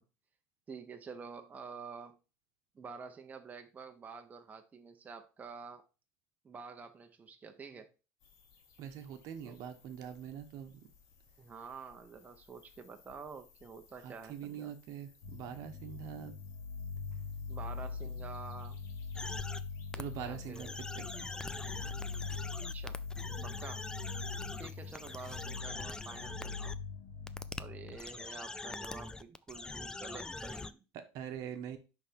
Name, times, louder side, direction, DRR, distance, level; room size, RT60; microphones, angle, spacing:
voice 1, 0.7-2.2 2.7-5.8 6.4-7.9 9.4-9.6 11.4-14.7 17.5-18.8 20.2-20.7 22.7-23.0 23.4-23.9 24.6-26.8 27.6-30.8, right 5 dB, 25° right, 0.8 m, -48 dB
sound 1, 8.2-25.6, left 6 dB, 55° left, 1.6 m, -64 dB
voice 2, 8.8-10.8 14.0-16.3 19.9-20.7 20.9-21.3 30.9-31.8, right 9 dB, 65° right, 1.0 m, -43 dB
sound 2, 15.2-28.0, left 5 dB, 85° left, 1.0 m, -42 dB
sound 3, 19.1-19.6 19.9-20.0 20.5-26.8 27.3-27.6 27.9-30.7, left 3 dB, 10° left, 0.3 m, -43 dB
5.6 x 3.5 x 5.1 m
supercardioid pair, 105°, 7 cm